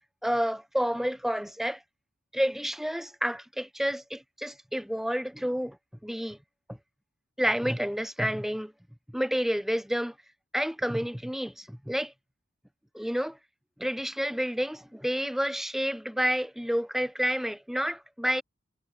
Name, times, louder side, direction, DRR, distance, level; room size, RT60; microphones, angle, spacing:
voice 1, 0.2-1.8 2.3-5.8 6.0-6.4 7.4-8.7 9.1-10.1 10.5-12.1 12.9-13.4 13.8-18.4, equal, ahead, 1.1 m, -29 dB
head